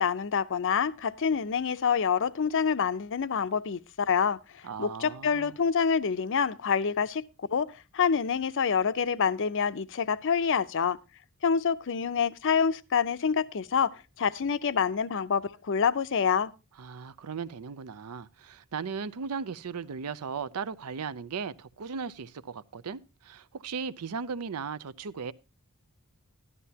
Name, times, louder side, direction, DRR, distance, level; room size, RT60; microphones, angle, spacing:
voice 1, 0.0-4.4 4.8-7.2 7.5-11.0 11.4-16.5, left 6 dB, 60° left, 0.6 m, -27 dB
voice 2, 4.6-5.5 16.8-25.3, right 5 dB, 85° right, 0.6 m, -37 dB
12.5 x 11.0 x 2.8 m
head